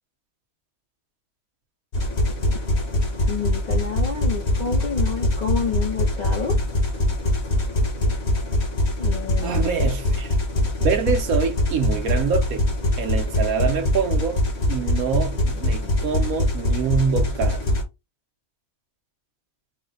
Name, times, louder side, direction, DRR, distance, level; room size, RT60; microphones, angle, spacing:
sound 1, 1.9-17.8, left 1 dB, 50° left, 1.4 m, -23 dB
voice 1, 3.3-6.6 9.0-9.7, left 5 dB, 70° left, 0.4 m, -29 dB
voice 2, 9.4-10.3 10.8-12.7 13.0-14.4 14.7-17.6, right 6 dB, 80° right, 1.3 m, -25 dB
4.1 x 2.1 x 3.9 m
omnidirectional pair, 1.5 m